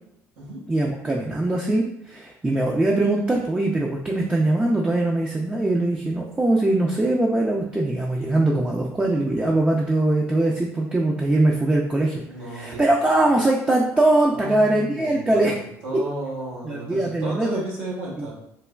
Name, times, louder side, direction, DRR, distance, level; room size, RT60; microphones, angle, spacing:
voice 1, 0.7-12.2 12.5-15.6 16.6-17.6 18.2-18.3, right 2 dB, 15° right, -1 dB, 0.4 m, -21 dB
voice 2, 12.2-12.8 14.3-15.4 15.8-18.3, right 1 dB, 90° right, -6 dB, 1.0 m, -33 dB
3.2 x 2.1 x 2.3 m, 0.81 s
hypercardioid pair, 60°, 7 cm